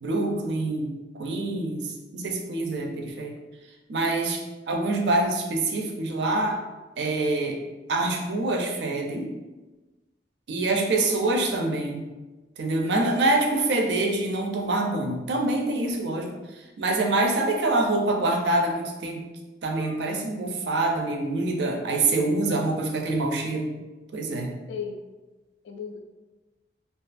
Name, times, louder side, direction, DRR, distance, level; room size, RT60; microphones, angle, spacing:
voice 1, 0.0-3.4 3.9-6.6 7.0-7.6 7.9-9.3 10.5-12.0 12.6-16.3 16.8-19.3 19.6-23.7 24.1-24.5, right 2 dB, 75° right, 2 dB, 0.4 m, -25 dB
voice 2, 10.9-11.4 22.5-22.7 24.7-25.0 25.6-26.0, left 6 dB, 80° left, 5 dB, 0.3 m, -37 dB
2.5 x 2.4 x 2.4 m, 1.2 s
head